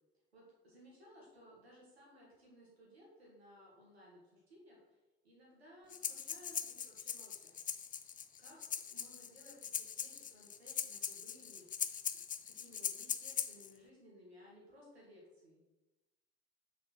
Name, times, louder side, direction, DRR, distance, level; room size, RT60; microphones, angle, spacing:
voice 1, 0.3-5.0 5.2-7.6 8.4-8.6 8.9-12.2 12.5-15.6, equal, 90° right, -4 dB, 1.9 m, -60 dB
Breathing, 5.9-13.7, left 7 dB, 25° left, 0.5 m, -41 dB
6.4 x 4.1 x 5.8 m, 1.1 s
figure-of-eight pair, 50°, 31 cm